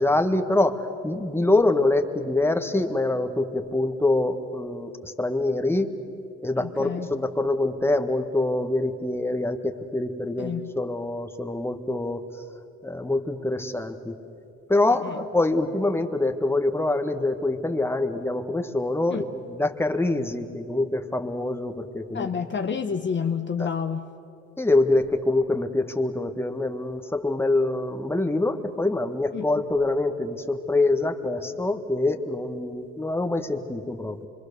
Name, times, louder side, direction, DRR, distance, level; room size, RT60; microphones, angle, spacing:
voice 1, 0.0-5.9 6.4-14.1 14.7-22.3 23.6-23.7 24.6-34.3, left 2 dB, 10° left, 6 dB, 1.5 m, -25 dB
voice 2, 6.6-7.1 10.4-10.7 15.0-15.2 19.1-19.2 22.1-24.1 29.3-29.4, left 6 dB, 40° left, 6 dB, 0.9 m, -29 dB
26.0 x 23.0 x 6.8 m, 2.6 s
cardioid pair, 90°, 30 cm